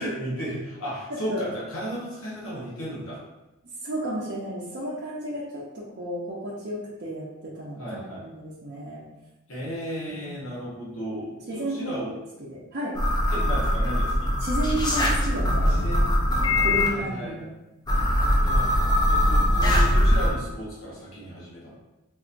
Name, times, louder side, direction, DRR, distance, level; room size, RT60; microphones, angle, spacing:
voice 1, 0.0-3.2 7.8-8.2 9.5-12.1 13.3-14.3 15.6-16.2 16.5-17.5 18.1-18.7 19.0-21.8, equal, 65° left, -7 dB, 1.0 m, -35 dB
voice 2, 1.1-1.4 3.8-9.0 10.1-10.5 11.5-12.0 12.4-13.0 14.4-15.8 16.6-17.4, right 1 dB, 45° right, -9 dB, 0.6 m, -32 dB
sound 1, 12.9-16.9 17.9-20.3, left 1 dB, 20° left, 0.4 m, -21 dB
3.9 x 2.6 x 2.5 m, 1.0 s
head